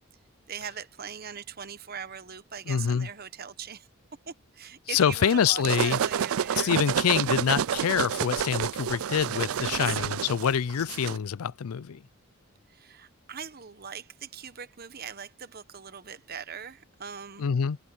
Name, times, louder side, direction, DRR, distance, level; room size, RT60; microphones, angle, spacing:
voice 1, 0.5-3.9 4.3-6.8 9.2-9.3 9.7-10.0 12.7-17.5, right 7 dB, 45° right, 1.0 m, -41 dB
voice 2, 2.7-3.1 4.9-6.0 6.6-12.0 17.4-17.8, left 7 dB, 75° left, 0.4 m, -26 dB
sound 1, 5.3-11.2, right 8 dB, 70° right, 0.4 m, -29 dB
head